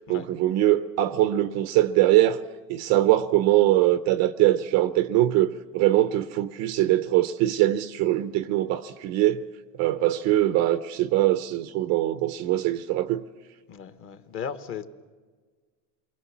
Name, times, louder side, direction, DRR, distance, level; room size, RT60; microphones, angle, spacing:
voice 1, 0.0-2.4 2.7-9.4 9.8-13.2, right 14 dB, 35° right, 0.6 m, -22 dB
voice 2, 13.7-14.9, left 7 dB, 30° left, 1.2 m, -36 dB
29.0 x 22.5 x 7.2 m
supercardioid pair, 155°, 45 cm